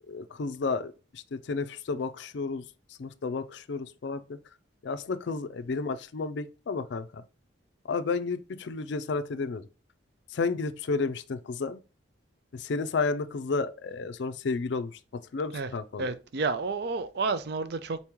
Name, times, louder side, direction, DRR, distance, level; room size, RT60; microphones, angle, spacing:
voice 1, 0.1-2.7 3.0-4.4 4.8-7.2 7.8-9.7 10.3-11.8 12.5-16.1, left 4 dB, 60° left, 0.4 m, -32 dB
voice 2, 16.0-18.0, right 4 dB, 55° right, 0.4 m, -30 dB
4.1 x 3.0 x 3.6 m
head